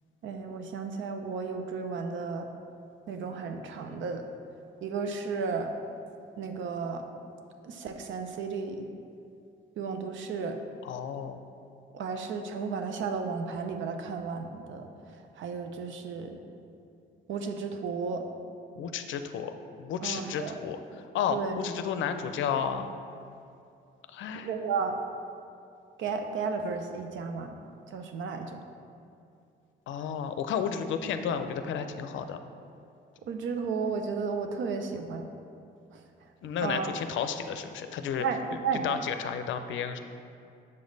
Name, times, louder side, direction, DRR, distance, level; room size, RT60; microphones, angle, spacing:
voice 1, 0.2-2.5 3.1-4.2 4.8-5.7 6.4-7.0 7.6-8.8 9.8-10.6 11.9-14.9 15.4-16.4 17.3-18.3 20.0-20.6 21.3-21.5 24.4-25.0 26.0-27.6 27.9-28.6 33.3-35.3 36.6-36.9 38.2-38.9, right 5 dB, 75° right, 6 dB, 0.6 m, -33 dB
voice 2, 10.8-11.4 18.8-22.9 24.1-24.5 29.9-32.4 36.4-38.3 38.8-40.0, left 7 dB, 75° left, 8 dB, 0.5 m, -32 dB
6.8 x 5.2 x 3.9 m, 2.5 s
cardioid pair, 90°, 20 cm